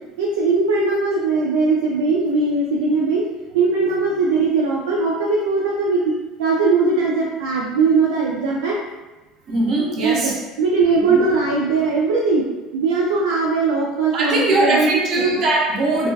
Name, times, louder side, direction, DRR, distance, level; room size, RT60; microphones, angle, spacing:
voice 1, 0.2-3.3 3.5-6.1 6.4-8.8 10.0-12.4 12.7-14.9, right 4 dB, 85° right, -3 dB, 0.3 m, -19 dB
voice 2, 9.5-10.4 11.1-11.2 14.1-16.1, right 2 dB, 55° right, -2 dB, 0.7 m, -20 dB
2.3 x 2.2 x 2.5 m, 1.1 s
supercardioid pair, 85°, 0 cm